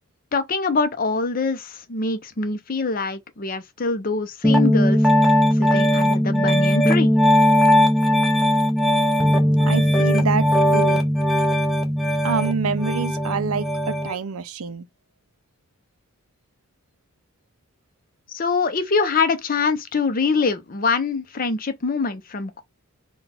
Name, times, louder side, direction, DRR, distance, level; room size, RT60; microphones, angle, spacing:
voice 1, 0.3-5.1 5.5-7.1 18.3-22.6, left 4 dB, 40° left, 0.6 m, -24 dB
Piano, 4.4-14.1, equal, ahead, 0.7 m, -18 dB
voice 2, 9.6-10.5 10.7-11.0 12.2-14.9, right 5 dB, 75° right, 0.5 m, -26 dB
4.1 x 2.3 x 4.1 m
head